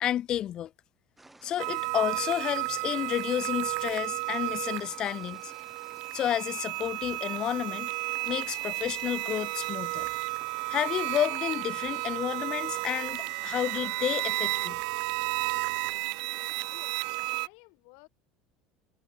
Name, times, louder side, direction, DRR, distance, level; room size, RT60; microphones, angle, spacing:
voice 1, 0.0-0.7 1.4-5.5 6.1-7.9 8.3-10.1 10.7-14.8, left 11 dB, 35° left, 0.4 m, -31 dB
sound 1, 1.2-17.4, right 2 dB, 5° right, 1.2 m, -54 dB
sound 2, 1.6-17.5, right 35 dB, 70° right, 0.9 m, -33 dB
voice 2, 16.7-18.1, left 40 dB or more, 75° left, 2.6 m, -55 dB
cardioid pair, 140°, 2 cm